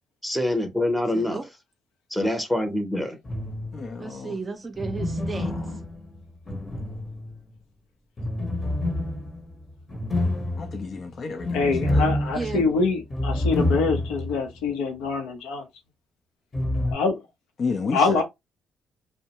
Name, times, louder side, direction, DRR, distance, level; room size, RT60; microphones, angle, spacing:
voice 1, 0.2-1.4 2.1-3.2, left 1 dB, ahead, 0.7 m, -25 dB
voice 2, 1.1-1.5 4.0-5.5 12.3-12.7, right 4 dB, 35° right, 0.4 m, -34 dB
sound 1, 3.2-4.0 4.8-7.5 8.2-14.4 14.7-14.8 16.5-16.9, left 1 dB, 35° left, 1.0 m, -28 dB
voice 3, 3.7-4.3 10.6-12.1 17.6-18.2, left 4 dB, 50° left, 0.5 m, -31 dB
voice 4, 11.5-15.6 16.9-17.1 17.9-18.2, left 4 dB, 85° left, 0.7 m, -24 dB
2.6 x 2.1 x 2.9 m
supercardioid pair, 70°, 0 cm